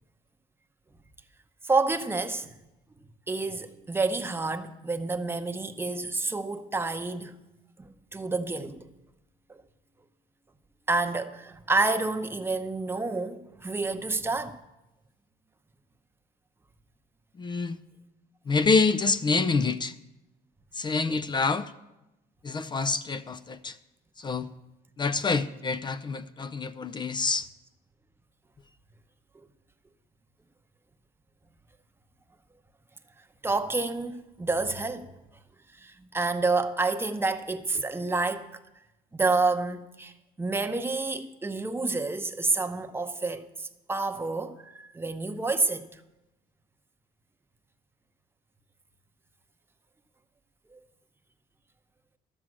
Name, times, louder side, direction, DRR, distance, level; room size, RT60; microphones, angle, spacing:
voice 1, 1.6-2.5 3.3-7.4 7.8-8.9 9.5-9.6 10.9-14.6 21.1-21.2 33.4-35.1 35.8-38.5 39.1-40.1 40.4-46.0 50.7-50.8, right 3 dB, 15° right, 0.8 m, -29 dB
voice 2, 17.4-17.8 18.5-19.9 20.7-21.7 22.4-23.8 24.2-24.5 25.0-27.5, left 4 dB, 25° left, 0.4 m, -27 dB
12.5 x 7.5 x 6.1 m
cardioid pair, 110°, 17 cm